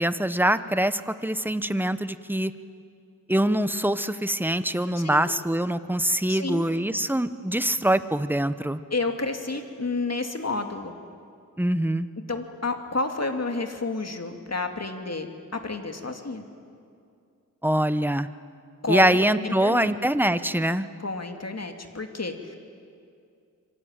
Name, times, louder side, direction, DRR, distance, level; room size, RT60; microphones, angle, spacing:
voice 1, 0.0-2.5 3.3-8.8 11.6-12.1 17.6-18.3 18.9-20.9, right 1 dB, 5° right, 12 dB, 1.0 m, -24 dB
voice 2, 5.0-5.3 6.3-6.7 8.9-10.9 12.3-16.4 18.8-19.9 21.0-22.6, left 3 dB, 50° left, 5 dB, 2.5 m, -30 dB
26.5 x 24.5 x 9.0 m, 2.4 s
wide cardioid pair, 60°, 32 cm